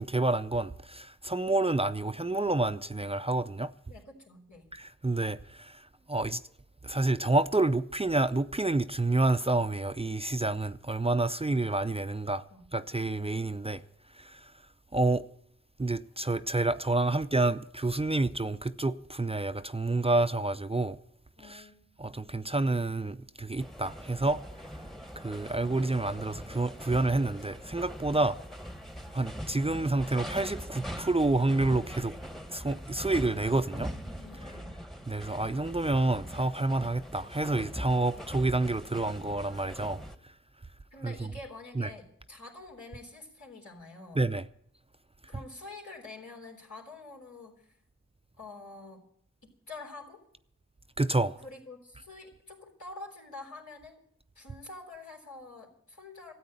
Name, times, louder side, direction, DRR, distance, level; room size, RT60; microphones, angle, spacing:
voice 1, 0.0-3.7 4.7-6.4 6.8-12.4 12.7-13.8 14.1-14.5 14.9-15.3 15.8-21.0 21.4-21.6 22.0-24.4 25.2-28.4 29.1-32.1 32.5-33.9 35.1-40.0 41.0-41.3 41.8-41.9 44.2-44.4 51.0-51.4, right 2 dB, 20° right, 0.5 m, -28 dB
voice 2, 3.9-4.7 12.5-12.7 21.4-22.3 33.7-34.8 40.9-44.3 45.3-47.8 48.4-49.0 49.4-50.2 51.4-54.0 54.4-56.3, left 2 dB, 75° left, 3.8 m, -47 dB
sound 1, 23.6-40.2, equal, ahead, 1.1 m, -42 dB
13.5 x 8.6 x 9.7 m
wide cardioid pair, 45°, 30 cm